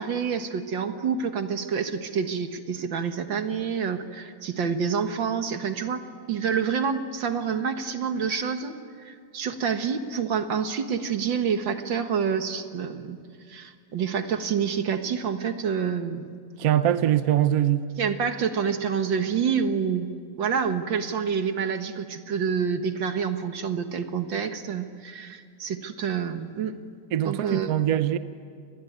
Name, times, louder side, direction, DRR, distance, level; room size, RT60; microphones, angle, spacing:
voice 1, 0.0-6.0 6.3-8.8 9.0-13.2 13.5-16.3 18.0-20.1 20.4-26.8 27.2-27.7, right 6 dB, 80° right, 2.2 m, -27 dB
voice 2, 16.6-17.9 27.1-28.2, right 11 dB, 60° right, 1.2 m, -22 dB
29.0 x 21.0 x 9.5 m
omnidirectional pair, 2.0 m